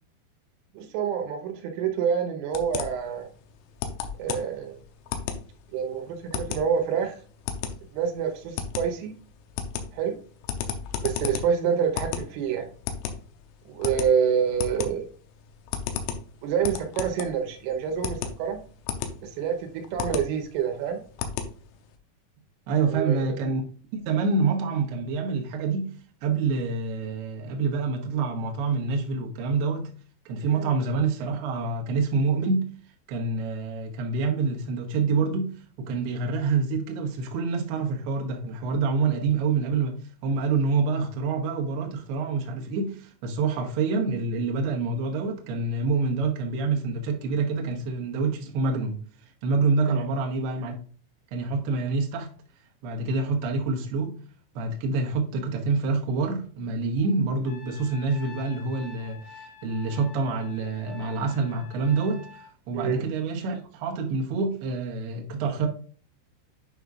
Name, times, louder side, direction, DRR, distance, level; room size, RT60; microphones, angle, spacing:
voice 1, 0.8-3.3 4.2-4.8 5.7-7.2 7.9-9.1 9.9-10.2 11.0-12.7 13.7-15.1 16.4-18.6 19.2-21.0 22.9-23.3 30.4-30.7 49.9-50.0 62.7-63.0, right 7 dB, 85° right, 3.5 m, -27 dB
sound 1, 2.5-22.0, left 7 dB, 80° left, 2.9 m, -34 dB
voice 2, 22.7-23.6 23.9-25.9 26.2-29.9 30.3-32.7 33.1-49.0 49.4-50.8 51.3-52.3 52.8-54.2 54.5-65.7, right 4 dB, 70° right, 2.8 m, -27 dB
Trumpet, 57.5-62.5, left 6 dB, 60° left, 3.5 m, -47 dB
9.3 x 5.5 x 2.4 m
omnidirectional pair, 5.7 m